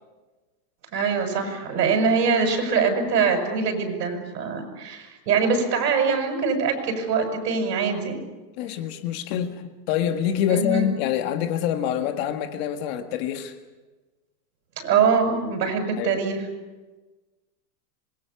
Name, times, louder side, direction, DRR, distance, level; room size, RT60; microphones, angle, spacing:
voice 1, 0.9-8.2 10.5-10.9 14.8-16.5, right 5 dB, 80° right, 5 dB, 7.0 m, -23 dB
voice 2, 8.6-13.6 16.0-16.2, left 9 dB, 40° left, 7 dB, 1.8 m, -26 dB
27.0 x 21.5 x 7.1 m, 1.2 s
supercardioid pair, 170°, 49 cm